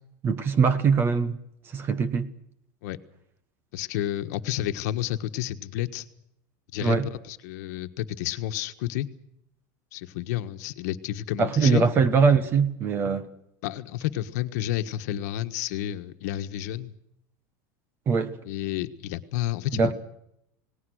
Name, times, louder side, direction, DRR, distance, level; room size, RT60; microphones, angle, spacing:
voice 1, 0.2-1.4 1.7-2.3 6.8-7.1 11.4-13.3 18.1-18.3 19.7-19.9, right 5 dB, 20° right, 14 dB, 1.2 m, -22 dB
voice 2, 3.7-6.1 6.7-9.1 9.9-11.8 13.6-16.9 18.4-19.9, left 13 dB, 65° left, 8 dB, 1.4 m, -30 dB
28.5 x 18.5 x 6.4 m, 0.77 s
supercardioid pair, 175°, 10 cm